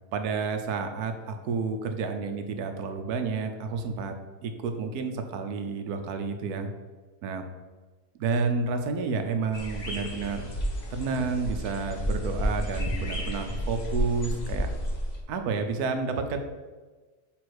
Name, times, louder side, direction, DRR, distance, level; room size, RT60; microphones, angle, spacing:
voice 1, 0.1-4.1 4.4-6.7 7.2-7.4 8.2-10.4 10.9-14.7 15.3-16.4, right 4 dB, 90° right, 6 dB, 1.2 m, -30 dB
sound 1, 9.5-15.2, equal, 35° left, 1.0 m, -31 dB
6.1 x 3.9 x 4.7 m, 1.3 s
omnidirectional pair, 1.6 m